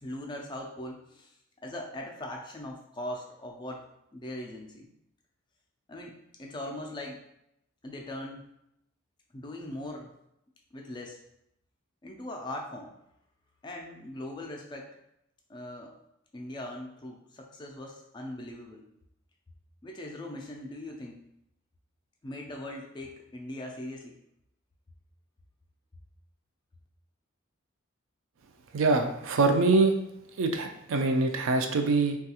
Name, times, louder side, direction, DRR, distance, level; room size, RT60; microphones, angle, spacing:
voice 1, 0.0-1.3 1.6-3.8 4.1-4.9 5.9-7.2 7.8-8.5 9.3-10.1 10.7-11.2 12.0-12.9 13.6-14.9 15.5-15.9 16.3-18.9 19.8-21.2 22.2-24.2, left 1 dB, 20° left, 1 dB, 0.3 m, -40 dB
voice 2, 28.7-29.9 30.4-32.2, right 3 dB, 65° right, 5 dB, 0.4 m, -24 dB
3.3 x 2.3 x 2.8 m, 0.79 s
head